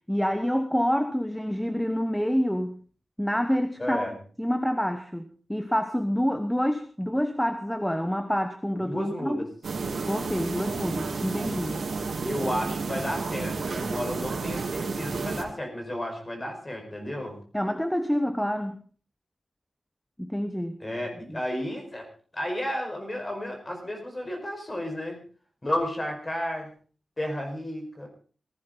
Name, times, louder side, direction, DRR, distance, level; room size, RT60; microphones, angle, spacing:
voice 1, 0.1-2.8 3.2-4.1 4.4-9.5 10.1-11.8 17.5-18.8 20.2-20.8 21.3-21.4, equal, 5° left, 8 dB, 1.1 m, -27 dB
voice 2, 3.8-4.2 8.8-9.5 12.2-17.4 20.8-22.1 22.3-25.2 25.6-26.7 27.2-28.1, left 1 dB, 20° left, 3 dB, 5.2 m, -32 dB
sound 1, 9.6-15.4, right 4 dB, 70° right, 3.4 m, -31 dB
18.5 x 16.5 x 4.0 m, 0.41 s
wide cardioid pair, 170°, 0 cm